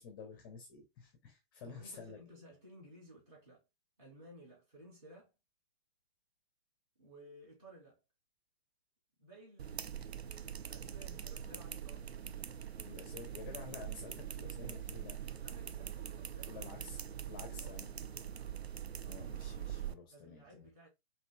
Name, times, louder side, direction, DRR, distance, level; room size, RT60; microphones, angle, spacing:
voice 1, 0.0-2.2 12.9-15.2 16.5-17.0 17.3-17.9 19.1-20.7, left 5 dB, 20° left, 0.6 m, -50 dB
voice 2, 1.6-3.7 4.0-5.3 7.0-8.0 9.2-10.3 10.7-12.1 15.4-17.0 17.2-17.8 20.1-20.9, equal, 35° right, 2.4 m, -57 dB
sound 1, 9.6-19.9, right 9 dB, 85° right, 0.5 m, -43 dB
5.2 x 2.8 x 2.2 m
figure-of-eight pair, 130°, 31 cm